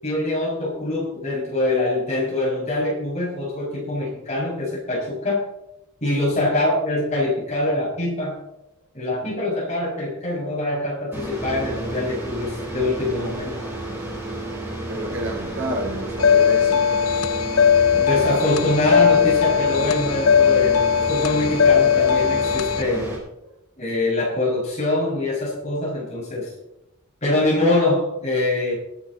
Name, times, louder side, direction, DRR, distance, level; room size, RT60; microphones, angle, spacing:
voice 1, 0.0-5.4 6.0-8.4 8.9-13.6 17.9-23.1 23.8-26.5 27.2-28.7, left 2 dB, 35° left, 5.8 m, -24 dB
sound 1, 11.1-23.2, right 2 dB, 10° right, 4.4 m, -32 dB
voice 2, 14.9-16.9, right 1 dB, 65° right, 3.7 m, -29 dB
sound 2, 16.2-22.8, left 7 dB, 85° left, 0.6 m, -18 dB
19.0 x 8.3 x 4.3 m
head